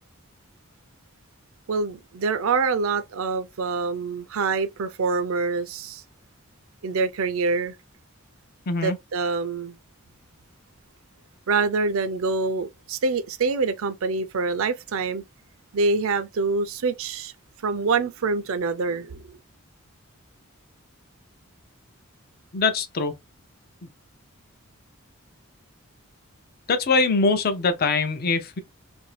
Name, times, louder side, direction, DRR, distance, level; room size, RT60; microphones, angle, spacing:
voice 1, 1.7-6.0 6.8-7.7 8.8-9.8 11.5-15.2 15.7-17.3 17.6-19.4, right 4 dB, 70° right, 0.5 m, -25 dB
voice 2, 8.7-9.0 22.5-23.1 26.7-28.6, left 4 dB, 45° left, 0.6 m, -22 dB
2.7 x 2.6 x 3.2 m
head